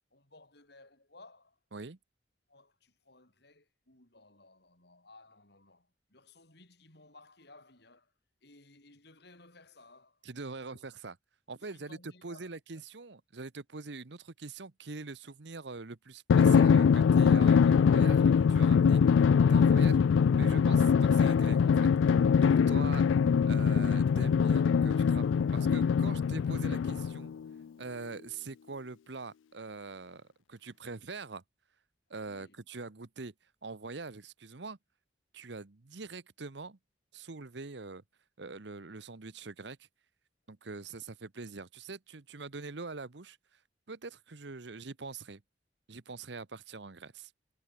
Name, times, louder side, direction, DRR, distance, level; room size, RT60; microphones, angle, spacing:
voice 1, 0.1-1.6 2.5-8.1 8.4-10.2 10.6-10.9 11.5-12.8 24.6-26.3 32.2-32.7, left 2 dB, 60° left, 5.4 m, -59 dB
voice 2, 10.2-11.2 11.5-20.0 20.3-21.9 22.4-23.0 23.4-25.2 25.5-27.3 27.8-31.4 32.1-33.3 33.6-34.8 35.3-36.8 37.1-38.0 38.4-39.9 40.5-43.4 43.9-45.4 45.9-47.3, right 3 dB, 65° right, 1.0 m, -43 dB
Drum, 16.3-27.3, left 6 dB, 85° left, 0.3 m, -23 dB
head